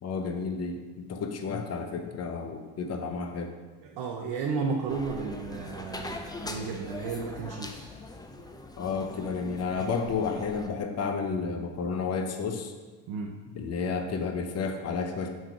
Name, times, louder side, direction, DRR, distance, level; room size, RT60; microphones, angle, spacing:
voice 1, 0.0-3.5 8.8-12.7 13.5-15.3, left 5 dB, 35° left, 5 dB, 0.8 m, -31 dB
voice 2, 3.8-7.9 13.1-13.3, right 5 dB, 60° right, 0 dB, 0.8 m, -33 dB
sound 1, 4.9-10.7, left 2 dB, 10° left, 0.5 m, -41 dB
5.2 x 3.7 x 5.7 m, 1.3 s
supercardioid pair, 80°, 43 cm